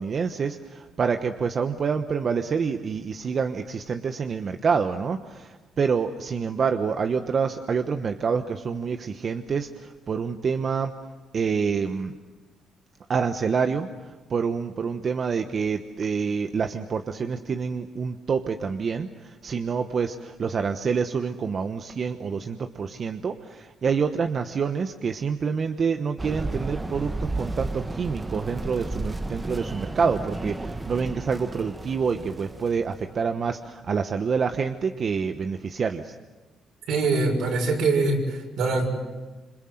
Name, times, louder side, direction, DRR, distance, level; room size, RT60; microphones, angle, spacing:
voice 1, 0.0-10.9 11.3-12.1 13.1-36.1, right 5 dB, 50° right, 7 dB, 1.1 m, -27 dB
sound 1, 26.2-33.5, right 2 dB, 20° right, 1.4 m, -33 dB
voice 2, 36.9-38.9, right 3 dB, 80° right, 1 dB, 6.7 m, -23 dB
27.0 x 26.0 x 7.9 m, 1.2 s
cardioid pair, 90°, 0 cm